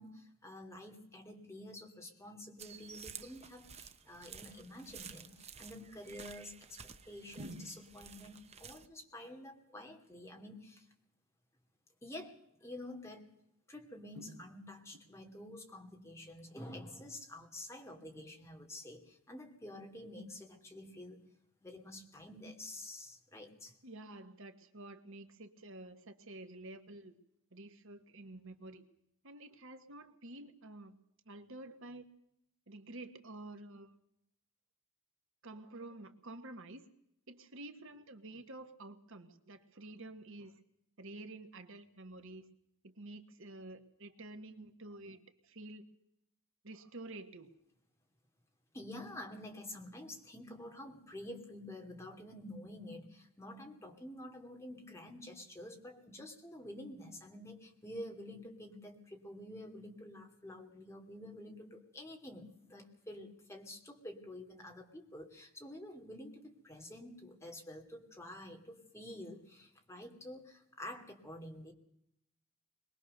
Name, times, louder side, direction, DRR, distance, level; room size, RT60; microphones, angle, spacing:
voice 1, 0.0-6.8 7.1-10.8 12.0-13.3 13.7-21.3 21.6-23.7 48.7-71.7, left 1 dB, 15° left, 2 dB, 2.5 m, -49 dB
Footsteps in the forest, 2.6-8.9, right 6 dB, 30° right, 0.9 m, -52 dB
voice 2, 7.4-7.7 14.2-14.4 23.8-27.2 27.5-28.8 29.2-31.0 31.2-32.0 32.7-34.0 35.4-36.9 37.3-40.6 41.0-42.4 42.8-45.9 46.6-47.5, right 2 dB, 65° right, 8 dB, 1.5 m, -50 dB
23.0 x 19.5 x 6.7 m, 0.78 s
head